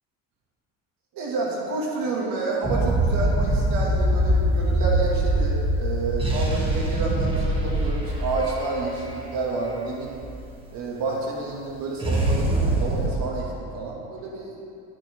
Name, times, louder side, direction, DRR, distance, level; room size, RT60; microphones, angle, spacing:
voice 1, 1.1-10.1 10.7-14.5, right 3 dB, 65° right, -2 dB, 2.2 m, -29 dB
sound 1, 2.6-10.4 12.0-13.1, right 1 dB, 15° right, 2.1 m, -23 dB
12.5 x 9.9 x 3.6 m, 2.5 s
supercardioid pair, 100°, 37 cm